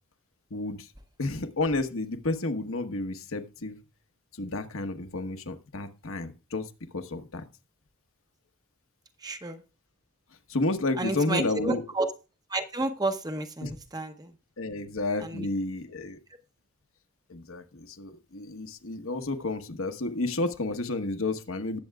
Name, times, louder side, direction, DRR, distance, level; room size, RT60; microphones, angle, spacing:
voice 1, 0.5-0.9 1.2-3.8 4.3-7.4 10.5-11.8 13.6-13.8 14.6-16.2 17.3-21.8, left 2 dB, 65° left, 7 dB, 1.2 m, -31 dB
voice 2, 9.2-9.6 11.0-12.1 12.5-14.3 15.2-15.5, right 2 dB, 15° right, 7 dB, 0.8 m, -31 dB
19.0 x 7.8 x 2.3 m, 0.32 s
head